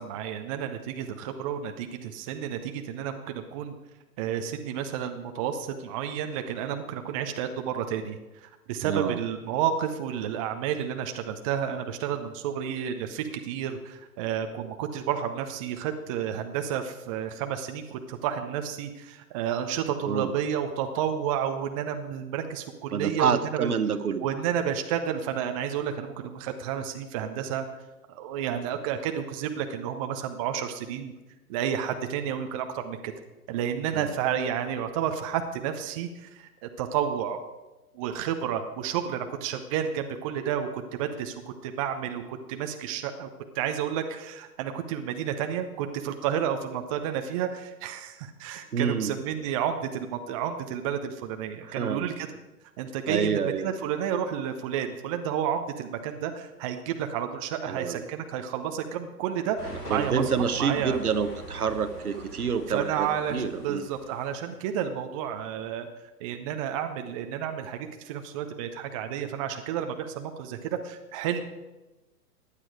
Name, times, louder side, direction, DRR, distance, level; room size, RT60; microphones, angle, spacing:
voice 1, 0.0-3.7 4.2-23.7 24.2-27.7 28.1-31.1 31.5-33.1 33.5-37.4 37.9-43.3 43.5-52.3 52.8-60.2 60.6-61.0 62.7-65.9 66.2-71.4, right 9 dB, 20° right, 6 dB, 0.7 m, -31 dB
voice 2, 8.8-9.2 20.1-20.3 22.9-24.3 33.9-34.1 48.7-49.1 51.6-52.0 53.1-53.7 57.7-58.0 59.9-63.8, right 6 dB, 65° right, 11 dB, 1.1 m, -27 dB
sound 1, 59.6-64.5, equal, 70° left, 3.0 m, -43 dB
15.0 x 10.0 x 4.9 m, 1.1 s
figure-of-eight pair, 115°, 47 cm